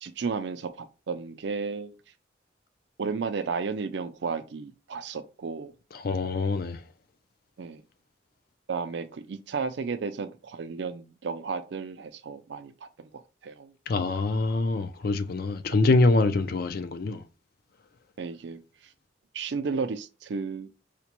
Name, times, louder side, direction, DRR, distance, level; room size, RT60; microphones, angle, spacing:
voice 1, 0.0-1.9 3.0-5.7 7.6-7.8 8.7-12.7 13.0-13.1 13.4-13.7 18.2-18.6 19.3-20.7, right 5 dB, 65° right, 0.4 m, -33 dB
voice 2, 5.9-6.8 13.9-17.2, left 3 dB, 50° left, 0.4 m, -25 dB
5.0 x 2.2 x 2.9 m
head